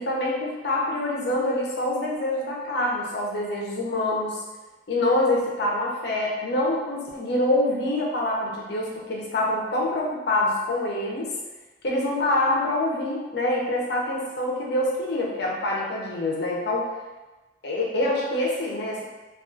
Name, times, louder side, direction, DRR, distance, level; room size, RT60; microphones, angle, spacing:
voice 1, 0.0-4.4 4.9-11.3 11.8-16.8 17.6-19.0, left 1 dB, 65° left, -3 dB, 0.6 m, -25 dB
2.4 x 2.3 x 2.5 m, 1.2 s
head